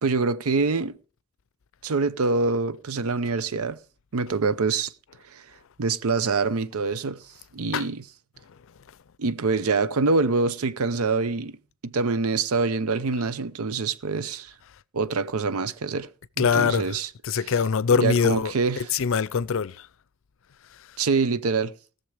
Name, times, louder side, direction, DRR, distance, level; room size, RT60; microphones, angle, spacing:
voice 1, 0.0-1.0 1.8-3.8 4.1-4.9 5.3-5.4 5.8-7.2 7.5-8.0 9.2-11.6 11.8-14.5 14.9-16.1 16.4-17.1 18.0-18.9 21.0-21.7, right 4 dB, 85° right, 0.6 m, -25 dB
voice 2, 16.4-17.0 17.2-19.9, left 6 dB, 65° left, 0.5 m, -23 dB
18.0 x 6.9 x 4.9 m
head